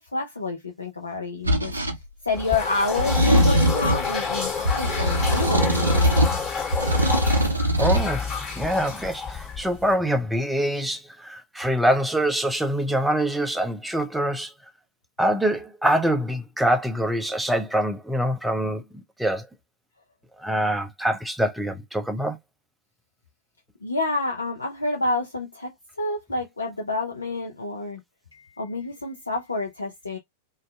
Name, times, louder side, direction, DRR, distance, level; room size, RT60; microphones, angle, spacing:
voice 1, 0.0-6.4 23.8-25.7 26.0-28.0 28.3-30.2, left 3 dB, 85° left, 0.4 m, -29 dB
sound 1, 1.4-2.0 3.0-4.1 4.6-6.4 6.7-8.1, equal, 85° right, 0.5 m, -21 dB
sound 2, 2.3-9.9, left 5 dB, 30° left, 1.4 m, -29 dB
voice 2, 7.8-14.5 15.2-19.5 20.4-22.4, right 1 dB, 5° right, 0.5 m, -25 dB
2.5 x 2.3 x 2.3 m
figure-of-eight pair, 95°, 0 cm